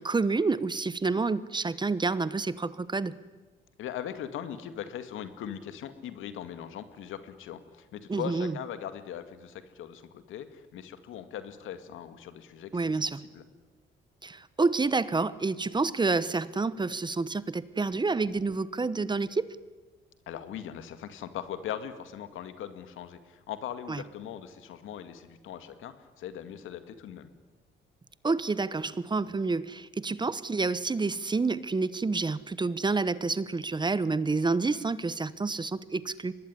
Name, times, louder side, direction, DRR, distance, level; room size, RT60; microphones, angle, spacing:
voice 1, 0.0-3.1 8.1-8.6 12.7-13.2 14.2-19.5 23.9-24.0 28.2-36.3, right 3 dB, 20° right, 17 dB, 1.0 m, -28 dB
voice 2, 3.8-12.9 13.3-13.4 20.3-27.3, left 9 dB, 85° left, 10 dB, 2.1 m, -40 dB
24.0 x 19.5 x 9.9 m, 1.2 s
cardioid pair, 90°, 20 cm